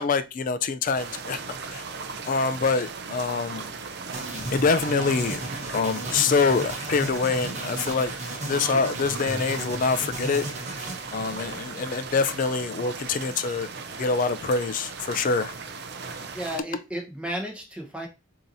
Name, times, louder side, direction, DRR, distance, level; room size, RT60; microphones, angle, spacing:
voice 1, 0.0-1.4 1.7-1.8 2.3-3.7 4.5-5.5 5.7-8.1 8.4-10.4 11.1-15.5, left 4 dB, 40° left, 0.4 m, -25 dB
sound 1, 0.9-16.6, right 4 dB, 55° right, 0.5 m, -37 dB
sound 2, 4.1-12.2, right 1 dB, 35° right, 1.1 m, -35 dB
voice 2, 16.3-18.1, equal, 5° right, 1.0 m, -33 dB
7.0 x 2.9 x 2.6 m
head